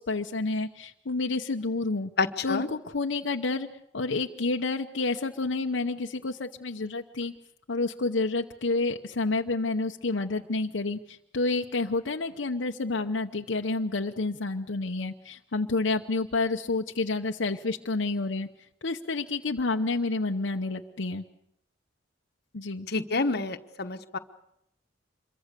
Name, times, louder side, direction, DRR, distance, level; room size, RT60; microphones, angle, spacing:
voice 1, 0.0-2.1 2.4-3.7 3.9-7.3 7.7-18.5 18.8-21.3 22.5-22.9, left 3 dB, 80° left, 3 dB, 0.9 m, -29 dB
voice 2, 2.2-2.7 22.9-24.2, left 3 dB, 60° left, 8 dB, 1.2 m, -28 dB
26.5 x 23.0 x 6.7 m, 0.77 s
head